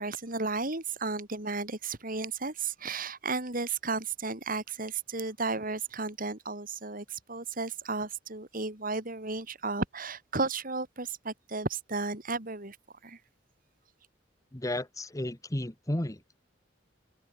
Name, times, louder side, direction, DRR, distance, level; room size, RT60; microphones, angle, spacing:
voice 1, 0.0-12.8 13.0-13.2, right 3 dB, 45° right, 5.0 m, -34 dB
voice 2, 14.5-16.2, left 1 dB, 15° left, 1.2 m, -33 dB
open air
head